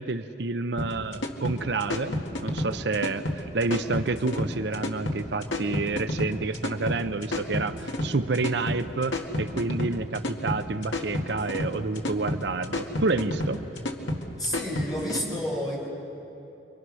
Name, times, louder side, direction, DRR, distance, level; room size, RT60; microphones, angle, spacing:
voice 1, 0.0-2.2 2.4-13.6, right 3 dB, 65° right, 10 dB, 0.7 m, -29 dB
sound 1, 0.8-15.2, left 1 dB, 75° left, 2.0 m, -30 dB
voice 2, 14.4-15.9, left 1 dB, 20° left, -3 dB, 6.2 m, -30 dB
29.5 x 23.5 x 6.3 m, 2.9 s
head